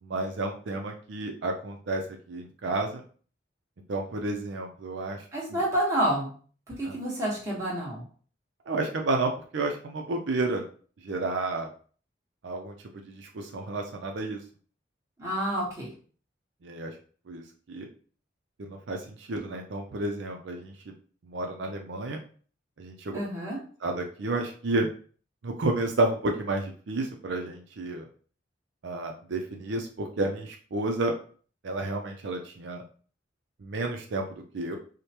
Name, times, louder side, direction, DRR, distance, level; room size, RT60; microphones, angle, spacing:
voice 1, 0.0-2.0 2.3-3.0 3.9-5.6 6.8-7.0 8.7-10.6 11.0-11.7 12.4-12.7 13.0-14.4 16.6-16.9 17.3-17.4 17.7-17.9 18.6-20.9 21.2-22.2 22.8-23.2 23.8-24.9 25.4-28.0 28.8-31.1 31.6-32.8 33.6-34.8, right 2 dB, 70° right, 2 dB, 0.5 m, -31 dB
voice 2, 5.3-6.3 6.8-8.0 15.2-15.9 23.1-23.6, right 1 dB, 15° right, -5 dB, 1.3 m, -28 dB
4.8 x 2.1 x 2.9 m, 0.43 s
head